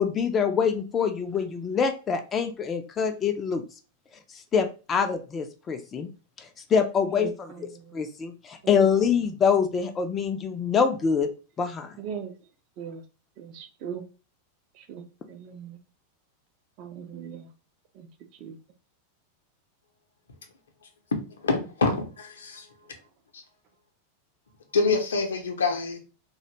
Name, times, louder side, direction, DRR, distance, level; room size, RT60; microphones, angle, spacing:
voice 1, 0.0-3.6 4.5-6.1 6.7-7.3 7.9-11.3 11.6-11.9, left 6 dB, 25° left, 0.3 m, -25 dB
voice 2, 7.1-8.0 8.6-9.3 12.0-12.5 12.8-13.0 13.4-14.1 14.7-15.8 16.8-17.5 17.9-18.6 22.9-23.0, right 7 dB, 40° right, 0.5 m, -40 dB
voice 3, 21.4-22.7 23.3-23.4 24.7-26.0, left 4 dB, 70° left, 0.6 m, -26 dB
2.4 x 2.1 x 2.8 m
figure-of-eight pair, 90°, 0 cm